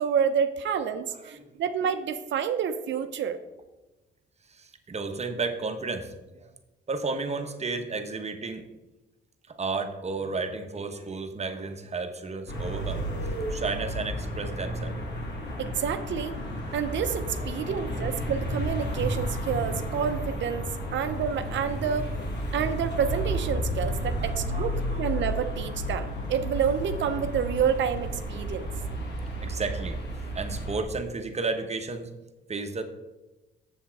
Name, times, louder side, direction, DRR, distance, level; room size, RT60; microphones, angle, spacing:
voice 1, 0.0-3.4 15.6-16.4 16.7-20.6 20.9-22.1 22.5-28.7, right 7 dB, 65° right, 9 dB, 0.7 m, -28 dB
voice 2, 1.2-1.6 4.5-6.5 6.9-8.6 9.5-13.0 13.5-15.1 17.6-18.0 20.8-20.9 24.2-25.1 29.4-30.0 30.3-32.1 32.5-32.8, right 4 dB, 35° right, 7 dB, 1.1 m, -33 dB
sound 1, 12.5-30.8, equal, 60° left, 2.3 m, -32 dB
7.3 x 7.1 x 4.7 m, 1.0 s
cardioid pair, 90°, 20 cm